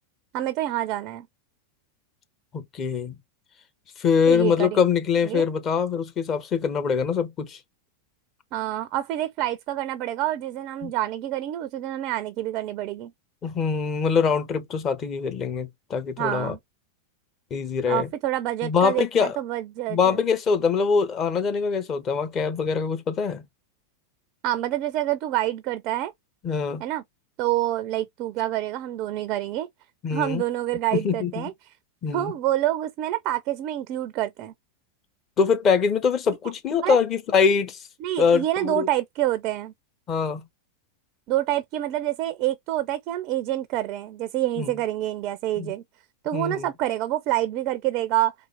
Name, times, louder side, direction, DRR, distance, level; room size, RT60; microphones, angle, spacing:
voice 1, 0.3-1.3 4.3-4.8 5.2-5.5 8.5-13.1 16.2-16.6 17.9-20.2 24.4-26.1 26.8-27.0 27.4-29.7 30.1-31.5 32.1-34.5 36.8-37.0 38.0-39.7 41.3-45.8 46.2-48.3, right 14 dB, 40° right, 0.5 m, -27 dB
voice 2, 2.5-3.1 4.0-7.6 10.8-10.9 13.4-16.5 17.5-18.1 18.6-19.4 19.9-23.4 26.4-26.8 30.0-30.4 30.9-31.5 32.0-32.3 35.4-37.8 38.2-38.9 40.1-40.4 44.6-44.7 45.6-45.7 46.3-46.7, left 6 dB, 30° left, 1.0 m, -23 dB
4.2 x 3.0 x 3.4 m
figure-of-eight pair, 90°, 0 cm